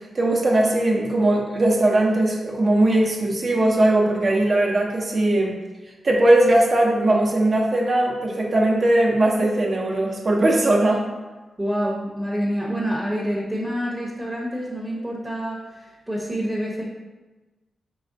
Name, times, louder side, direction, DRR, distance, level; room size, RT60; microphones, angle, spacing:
voice 1, 0.1-5.6 6.0-11.0, right 1 dB, 50° right, -2 dB, 0.8 m, -19 dB
voice 2, 11.6-16.8, equal, 15° right, -3 dB, 0.9 m, -27 dB
4.9 x 3.3 x 2.7 m, 1.2 s
cardioid pair, 60°, 0 cm